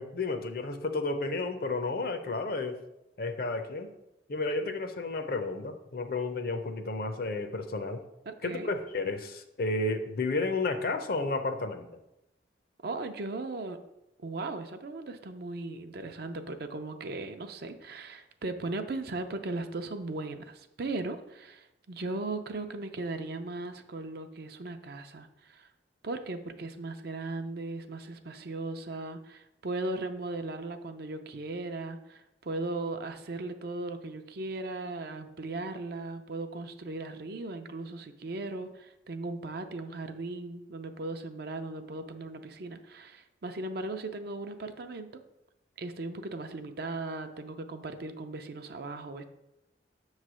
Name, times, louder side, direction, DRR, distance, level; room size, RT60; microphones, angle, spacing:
voice 1, 0.0-2.8 3.2-3.9 4.3-8.0 8.4-11.9, left 3 dB, 55° left, 8 dB, 0.6 m, -32 dB
voice 2, 8.3-8.7 12.8-13.8 14.2-25.7 26.0-45.1 45.8-49.2, right 2 dB, 60° right, 7 dB, 0.5 m, -37 dB
7.4 x 3.2 x 6.2 m, 0.91 s
head